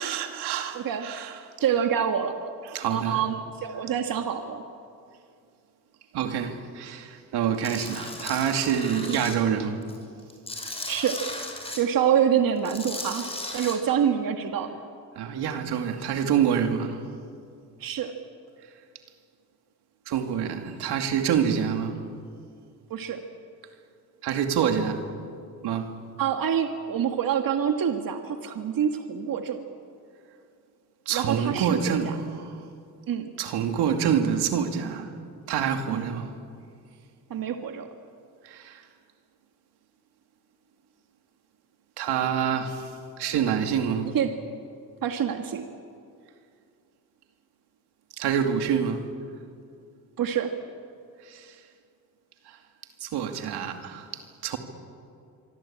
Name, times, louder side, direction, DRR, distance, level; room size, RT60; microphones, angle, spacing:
voice 1, 0.0-1.4 2.7-3.2 6.1-9.8 15.2-17.0 20.1-22.0 24.2-25.0 25.6-25.9 31.1-32.6 33.4-35.1 35.5-36.3 38.4-38.8 42.0-42.9 43.2-44.1 48.2-49.0 51.3-51.5 52.5-52.6 53.0-54.1 54.4-54.6, right 8 dB, 85° right, 2.5 m, -27 dB
voice 2, 0.7-1.1 1.6-2.4 2.9-4.6 9.1-9.3 10.9-11.2 11.8-14.7 17.8-18.1 22.9-23.2 26.2-29.6 31.1-32.2 33.1-33.3 35.9-36.1 37.3-37.9 44.1-44.3 45.0-45.6 50.2-50.5, right 8 dB, 60° right, 1.8 m, -26 dB
Tools, 7.6-9.3 9.8-11.8 12.6-13.7, left 2 dB, 15° left, 5.5 m, -36 dB
25.0 x 24.0 x 8.8 m
cardioid pair, 90°, 38 cm